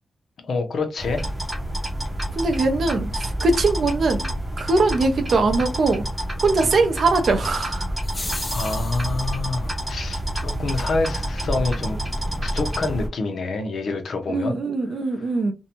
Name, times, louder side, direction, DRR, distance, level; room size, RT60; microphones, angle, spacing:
voice 1, 0.4-1.2 8.5-12.0 12.4-14.6, left 3 dB, 70° left, 0.6 m, -27 dB
sound 1, 1.0-13.1, right 1 dB, 10° right, 0.8 m, -28 dB
voice 2, 2.3-4.3 4.6-6.1 6.4-7.9 14.3-15.5, right 3 dB, 65° right, 0.5 m, -21 dB
sound 2, 8.0-9.4, left 2 dB, 25° left, 0.6 m, -34 dB
2.6 x 2.1 x 2.8 m
wide cardioid pair, 160°, 0 cm